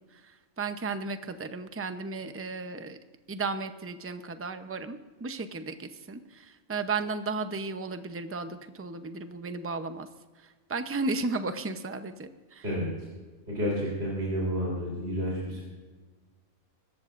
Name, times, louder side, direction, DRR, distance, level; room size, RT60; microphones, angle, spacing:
voice 1, 0.1-3.0 3.3-10.1 10.4-12.6, right 3 dB, 15° right, 8 dB, 0.5 m, -34 dB
voice 2, 13.5-15.6, equal, 45° right, -5 dB, 4.0 m, -30 dB
25.0 x 14.0 x 2.6 m, 1.4 s
omnidirectional pair, 1.5 m